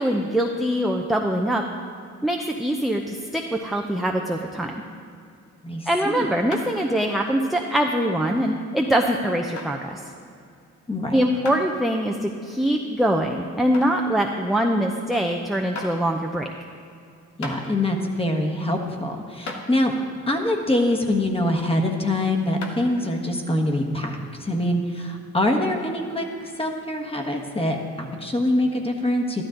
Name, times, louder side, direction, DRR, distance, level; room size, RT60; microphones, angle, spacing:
voice 1, 0.0-1.6 2.2-4.7 5.9-10.0 11.1-16.5, right 1 dB, ahead, 1 dB, 0.7 m, -23 dB
voice 2, 5.6-6.3 10.9-11.2 17.4-19.9 20.3-29.4, left 1 dB, 20° left, 3 dB, 1.5 m, -24 dB
sound 1, 6.5-6.9 7.4-7.5 8.3-8.4 9.6-9.7 11.4-11.6 12.2-12.3 13.7-14.1 15.2-15.3 15.7-16.0 17.0-17.1 17.4-17.6 18.9-19.0 19.5-19.6 22.6-22.9, left 3 dB, 70° left, 1.5 m, -34 dB
13.0 x 12.0 x 3.9 m, 2.3 s
cardioid pair, 90°, 30 cm